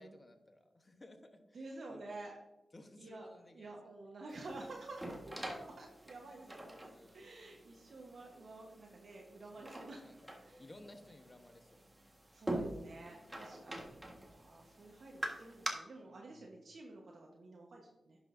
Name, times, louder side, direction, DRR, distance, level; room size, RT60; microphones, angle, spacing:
voice 1, 0.0-2.0 2.7-3.7 6.9-7.3 9.6-10.2 10.6-11.9 13.1-13.5 16.1-16.6, left 1 dB, 30° left, 7 dB, 1.0 m, -58 dB
voice 2, 1.5-2.3 3.0-3.3 3.5-10.1 10.5-10.6 12.3-14.0 14.3-18.2, right 2 dB, 65° right, -1 dB, 1.1 m, -51 dB
sound 1, 4.3-15.7, right 1 dB, 15° right, 1.4 m, -46 dB
10.5 x 6.1 x 2.6 m, 1.0 s
cardioid pair, 70°, 0 cm